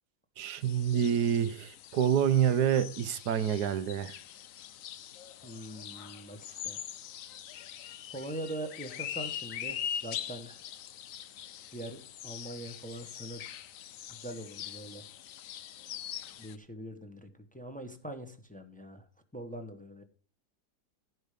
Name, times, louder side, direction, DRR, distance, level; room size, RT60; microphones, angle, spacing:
voice 1, 0.4-4.1, right 9 dB, 80° right, 1.4 m, -27 dB
sound 1, 0.6-16.6, left 10 dB, 65° left, 1.0 m, -43 dB
voice 2, 5.4-6.8 8.1-10.6 11.7-13.6 14.2-15.0 16.4-17.3 17.5-19.0 19.3-20.0, right 1 dB, 5° left, 1.3 m, -42 dB
16.0 x 5.5 x 5.1 m
omnidirectional pair, 1.7 m